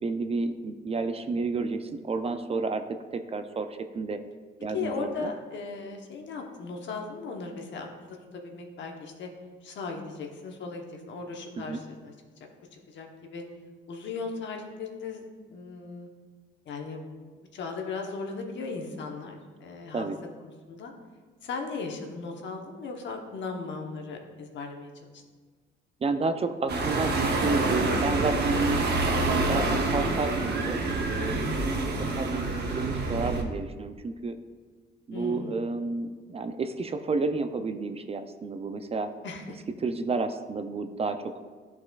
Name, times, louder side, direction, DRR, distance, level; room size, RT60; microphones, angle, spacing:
voice 1, 0.0-4.2 4.6-5.3 11.6-11.8 19.9-20.2 26.0-28.8 29.5-30.8 31.1-34.4 35.1-39.1 39.8-41.3, right 3 dB, 30° right, 8 dB, 0.4 m, -31 dB
voice 2, 4.7-9.3 9.6-12.1 12.7-13.4 13.9-16.1 16.6-17.0 17.5-20.1 20.7-20.9 21.4-25.2 35.1-35.6 39.2-39.4, left 4 dB, 65° left, 2 dB, 1.0 m, -37 dB
sound 1, 26.7-33.4, right 3 dB, 55° right, 0.9 m, -27 dB
11.0 x 4.2 x 2.3 m, 1.5 s
cardioid pair, 90°, 20 cm